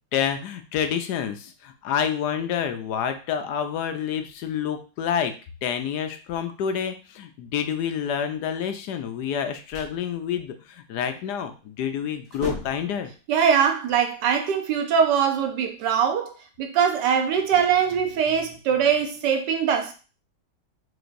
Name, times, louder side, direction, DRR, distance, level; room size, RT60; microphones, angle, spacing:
voice 1, 0.1-5.3 5.6-13.1, left 8 dB, 75° left, 1.2 m, -28 dB
sound 1, 9.2-10.0 11.6-11.8 12.1-13.0, left 2 dB, 45° right, 2.1 m, -37 dB
voice 2, 13.3-19.9, right 7 dB, 80° right, 1.4 m, -22 dB
4.8 x 4.2 x 2.6 m
omnidirectional pair, 1.8 m